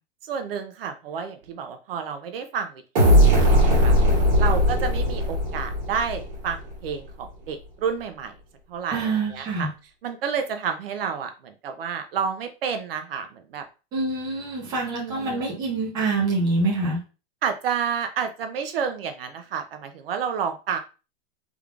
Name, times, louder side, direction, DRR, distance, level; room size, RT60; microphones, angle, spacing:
voice 1, 0.2-3.2 3.5-3.9 4.4-8.3 8.7-9.1 9.3-9.7 10.0-13.3 13.5-13.6 14.8-15.6 17.4-20.8, right 7 dB, 65° right, 8 dB, 0.6 m, -30 dB
sound 1, 3.0-6.6, equal, 45° right, 1.9 m, -19 dB
voice 2, 8.9-9.7 13.9-17.0, right 3 dB, 10° right, -3 dB, 0.7 m, -25 dB
3.5 x 3.4 x 2.4 m, 0.32 s
supercardioid pair, 180°, 32 cm